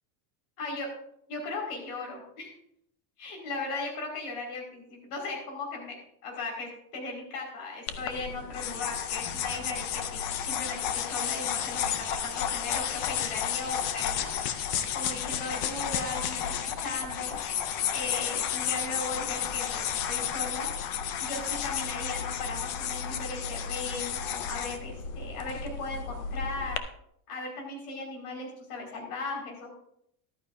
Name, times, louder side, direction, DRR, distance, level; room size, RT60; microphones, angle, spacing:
voice 1, 1.3-2.5 3.2-6.0 6.2-14.3 14.9-17.3 17.9-20.7 21.2-26.8 27.3-29.7, left 3 dB, 70° left, 0 dB, 4.9 m, -37 dB
sound 1, 7.9-26.8, left 8 dB, 30° left, 0.4 m, -32 dB
14.0 x 13.0 x 2.6 m, 0.73 s
supercardioid pair, 175°, 46 cm